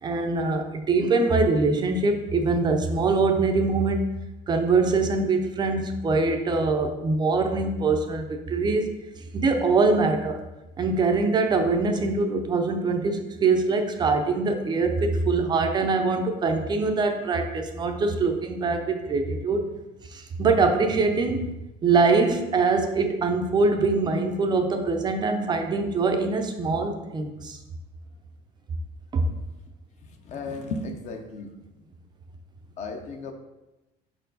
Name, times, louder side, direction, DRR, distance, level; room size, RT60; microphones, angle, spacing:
voice 1, 0.0-4.1 4.5-8.9 9.2-10.4 10.8-19.6 20.1-21.5 21.8-27.6 29.1-29.3, right 3 dB, 20° right, 5 dB, 0.5 m, -23 dB
voice 2, 30.1-31.5 32.8-33.3, left 3 dB, 35° left, 6 dB, 0.6 m, -34 dB
5.5 x 4.5 x 3.9 m, 0.99 s
cardioid pair, 170°, 19 cm